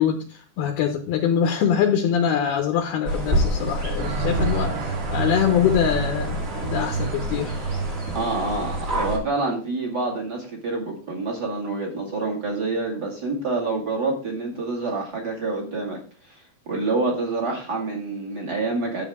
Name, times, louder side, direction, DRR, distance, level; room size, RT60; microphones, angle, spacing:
voice 1, 0.0-7.5, left 8 dB, 75° left, 5 dB, 2.6 m, -23 dB
sound 1, 3.0-9.2, equal, 55° right, 0.8 m, -28 dB
sound 2, 4.0-9.3, right 5 dB, 80° right, 3.8 m, -30 dB
voice 2, 8.1-19.0, right 3 dB, 35° right, -2 dB, 1.6 m, -27 dB
12.0 x 7.7 x 3.6 m, 0.38 s
omnidirectional pair, 5.3 m